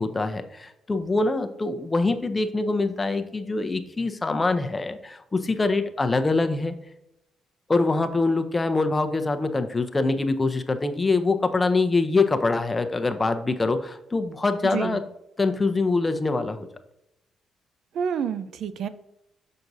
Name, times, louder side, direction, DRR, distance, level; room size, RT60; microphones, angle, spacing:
voice 1, 0.0-6.7 7.7-15.0 15.4-16.7, left 3 dB, 20° left, 8 dB, 0.7 m, -24 dB
voice 2, 14.6-15.0 17.9-18.9, right 7 dB, 70° right, 13 dB, 0.5 m, -28 dB
6.4 x 5.9 x 2.7 m, 0.84 s
cardioid pair, 90°, 0 cm